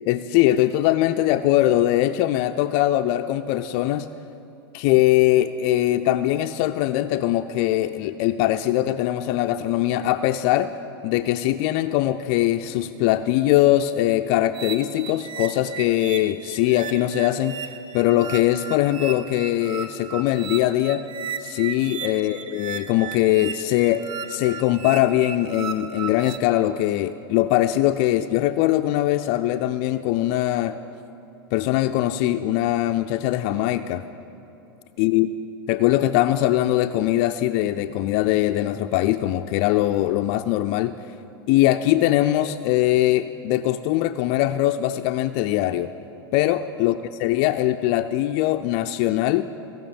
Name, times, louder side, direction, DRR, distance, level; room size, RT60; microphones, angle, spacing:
voice 1, 0.1-4.1 4.7-10.8 11.0-17.7 17.9-21.1 21.4-30.8 31.5-34.0 35.0-35.3 35.7-41.0 41.5-45.9 46.3-49.5, left 14 dB, 50° left, 8 dB, 0.4 m, -21 dB
sound 1, 14.5-26.4, right 7 dB, 40° right, 0.6 m, -36 dB
17.0 x 5.8 x 7.0 m, 2.9 s
hypercardioid pair, 95°, 13 cm